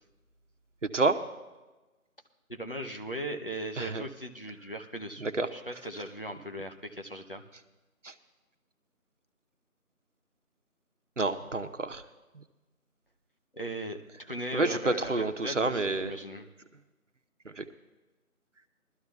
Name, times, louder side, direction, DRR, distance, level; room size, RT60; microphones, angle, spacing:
voice 1, 0.8-1.2 3.8-4.0 5.2-5.5 8.0-8.1 11.2-12.0 14.5-16.1 17.6-17.7, right 3 dB, 55° right, 8 dB, 0.8 m, -28 dB
voice 2, 2.5-7.4 13.5-14.0 14.3-16.5, right 1 dB, 40° left, 3 dB, 0.7 m, -38 dB
21.5 x 13.0 x 2.3 m, 1.1 s
figure-of-eight pair, 175°, 44 cm